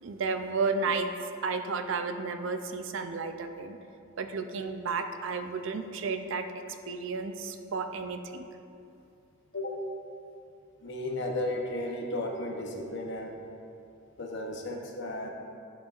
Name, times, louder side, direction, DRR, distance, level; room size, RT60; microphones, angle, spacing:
voice 1, 0.0-1.1 1.4-3.8 4.2-8.4, right 4 dB, 65° right, 7 dB, 0.4 m, -32 dB
voice 2, 9.5-9.8 10.8-13.4 14.2-15.3, left 1 dB, 55° left, 1 dB, 0.8 m, -34 dB
11.0 x 5.2 x 2.4 m, 2.6 s
head